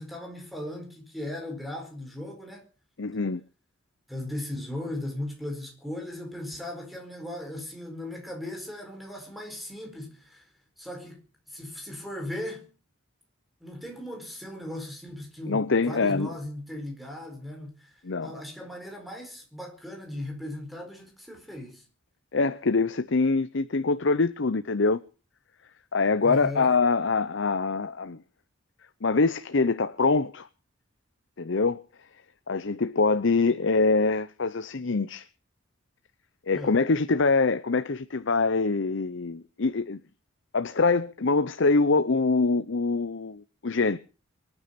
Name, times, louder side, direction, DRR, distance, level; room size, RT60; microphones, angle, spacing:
voice 1, 0.0-2.6 4.1-10.5 10.8-12.7 13.6-21.8 26.2-26.7 36.5-36.8, left 1 dB, ahead, 4.7 m, -37 dB
voice 2, 3.0-3.4 15.5-16.3 18.0-18.3 22.3-25.0 25.9-28.2 29.0-30.5 31.4-31.8 32.5-35.2 36.5-40.0 40.5-44.0, left 3 dB, 60° left, 0.7 m, -24 dB
24.0 x 9.9 x 5.9 m
head